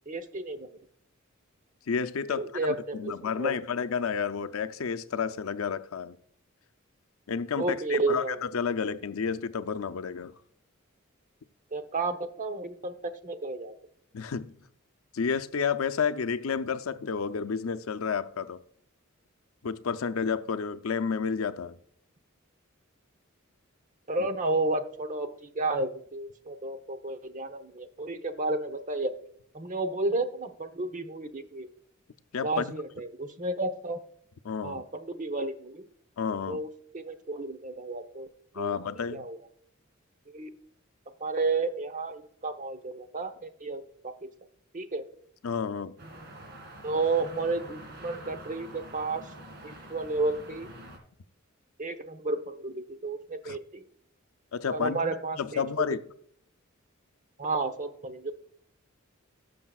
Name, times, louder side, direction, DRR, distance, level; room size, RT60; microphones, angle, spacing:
voice 1, 0.1-0.7 2.3-3.6 7.5-8.4 11.7-12.9 13.2-13.7 24.1-29.1 29.5-31.7 32.4-34.0 34.6-35.9 36.5-36.7 36.9-38.3 38.6-38.8 39.1-39.4 40.3-40.5 41.2-44.1 44.7-45.0 46.8-49.2 49.6-50.7 51.8-53.8 54.7-55.6 57.4-58.3, right 3 dB, 40° right, 0.9 m, -32 dB
voice 2, 1.9-2.5 2.9-6.2 7.3-10.3 14.1-14.5 15.1-18.6 19.6-21.8 24.2-24.3 32.3-32.7 34.4-34.8 36.2-36.6 38.5-39.2 45.4-45.9 53.4-53.6 54.5-55.0 55.4-56.0, left 6 dB, 85° left, 0.5 m, -31 dB
sound 1, 46.0-51.0, right 1 dB, 55° right, 2.3 m, -46 dB
18.0 x 6.5 x 2.4 m
head